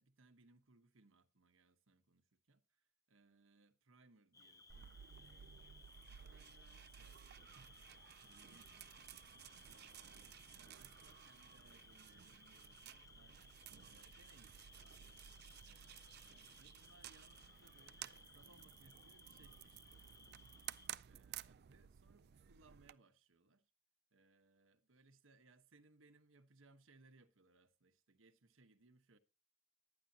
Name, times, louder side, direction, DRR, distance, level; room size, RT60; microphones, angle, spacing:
voice 1, 0.0-7.5 8.2-15.2 15.6-20.6 21.1-23.7 24.1-29.2, right 3 dB, 85° right, 1.1 m, -70 dB
Cricket, 4.3-20.9, left 3 dB, 15° left, 0.5 m, -63 dB
sound 1, 4.7-22.9, right 11 dB, 55° right, 0.4 m, -56 dB
11.5 x 9.7 x 2.8 m
head